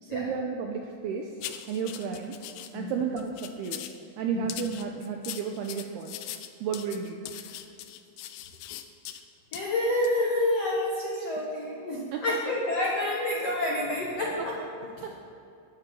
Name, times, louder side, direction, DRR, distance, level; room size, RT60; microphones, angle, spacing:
voice 1, 0.0-1.3 1.7-2.4 2.7-3.8 4.2-6.1 6.6-7.2 12.1-12.2 14.4-14.5 15.0-15.1, right 6 dB, 85° right, 3 dB, 2.3 m, -32 dB
sound 1, 1.4-2.7 3.2-4.0 4.5-9.2 9.5-9.7 10.0-10.2, left 12 dB, 85° left, 3.2 m, -40 dB
voice 2, 9.5-14.6 15.0-15.1, left 1 dB, 70° left, -4 dB, 1.5 m, -28 dB
20.0 x 12.5 x 4.5 m, 2.7 s
omnidirectional pair, 5.5 m